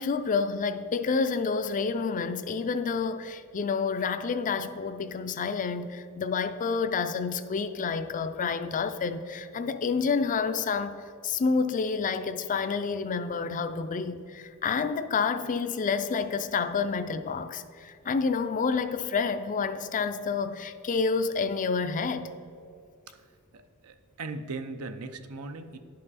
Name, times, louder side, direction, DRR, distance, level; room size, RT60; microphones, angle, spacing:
voice 1, 0.0-11.0 11.2-22.3, left 5 dB, 35° left, 0.4 m, -29 dB
voice 2, 23.5-25.8, right 3 dB, 80° right, 0.6 m, -39 dB
11.0 x 5.6 x 4.1 m
head